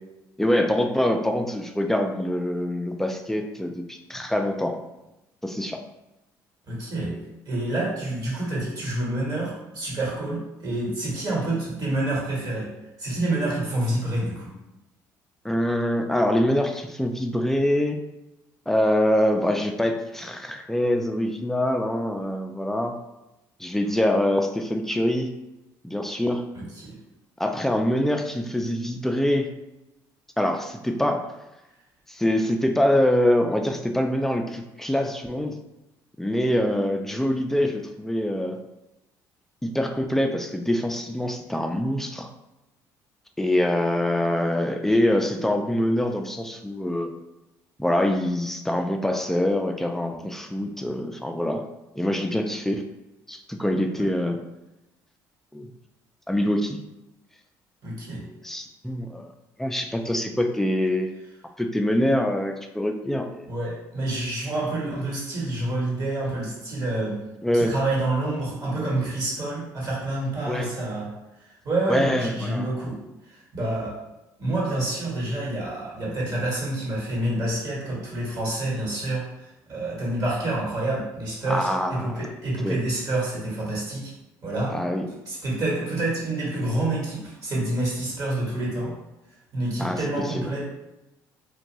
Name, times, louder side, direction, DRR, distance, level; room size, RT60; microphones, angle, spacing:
voice 1, 0.4-4.8 5.4-5.8 15.4-18.0 18.7-23.0 23.6-25.3 25.8-26.5 27.4-29.5 30.4-31.3 32.1-35.6 36.2-38.6 39.6-42.3 43.4-47.1 47.8-51.6 52.0-52.8 53.3-54.4 55.5-55.7 56.3-56.8 58.4-59.3 59.6-61.1 61.6-63.4 67.4-67.7 70.5-70.7 71.9-72.7 81.5-82.3 82.6-82.8 84.7-85.1 89.8-90.0 90.2-90.5, left 1 dB, 5° left, 5 dB, 0.3 m, -24 dB
voice 2, 6.7-7.2 7.5-12.7 13.0-14.6 26.5-27.0 53.9-54.1 57.8-58.3 63.5-67.2 67.5-71.1 71.6-73.0 73.3-74.0 74.4-84.1 84.4-84.8 85.3-89.0 89.5-90.7, right 2 dB, 50° right, -5 dB, 1.2 m, -28 dB
2.5 x 2.2 x 3.0 m, 0.95 s
supercardioid pair, 80°, 8 cm